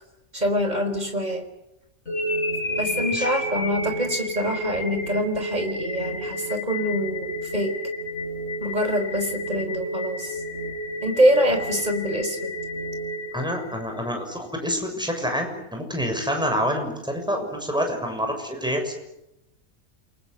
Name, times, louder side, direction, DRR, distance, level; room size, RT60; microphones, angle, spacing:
voice 1, 0.3-1.4 2.8-7.8 8.6-10.4 11.0-12.5, equal, 30° right, 7 dB, 4.4 m, -25 dB
sound 1, 2.1-14.1, equal, 50° left, 4.1 m, -30 dB
voice 2, 13.3-19.0, equal, 5° right, 3 dB, 6.8 m, -27 dB
29.0 x 24.0 x 8.2 m, 0.87 s
omnidirectional pair, 1.5 m